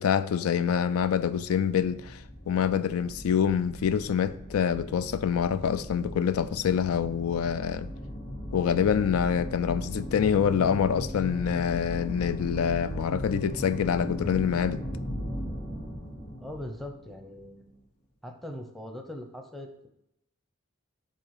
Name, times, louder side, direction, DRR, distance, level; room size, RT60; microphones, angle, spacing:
voice 1, 0.0-7.9 8.5-14.8, left 8 dB, 80° left, 0.4 m, -26 dB
sound 1, 1.5-17.6, equal, 35° left, 1.3 m, -38 dB
voice 2, 16.4-17.7 18.2-19.9, left 1 dB, ahead, 0.7 m, -41 dB
7.5 x 3.8 x 4.8 m
head